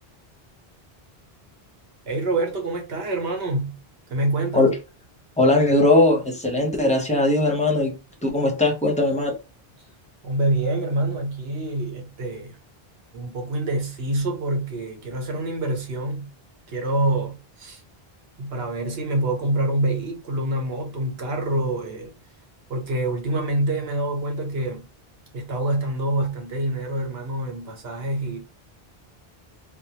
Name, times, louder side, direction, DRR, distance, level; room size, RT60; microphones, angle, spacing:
voice 1, 2.1-3.8 4.1-4.7 10.2-12.6 13.1-16.3 16.7-17.8 18.4-22.1 22.7-24.8 25.3-28.4, right 1 dB, 75° right, 1.1 m, -26 dB
voice 2, 5.4-7.9 8.2-9.3, left 2 dB, 10° left, 0.6 m, -19 dB
3.4 x 2.0 x 2.8 m
omnidirectional pair, 1.0 m